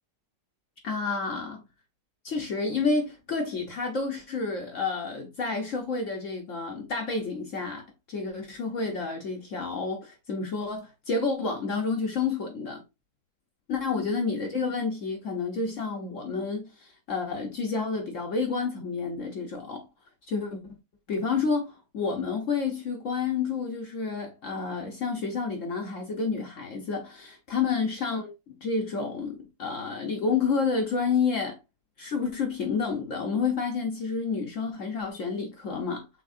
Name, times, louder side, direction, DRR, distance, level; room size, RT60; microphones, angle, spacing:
voice 1, 0.8-1.6 2.2-12.8 13.7-19.9 20.3-20.6 21.1-31.6 32.0-36.1, left 4 dB, 55° left, 1.1 m, -30 dB
6.2 x 2.9 x 2.5 m
omnidirectional pair, 1.8 m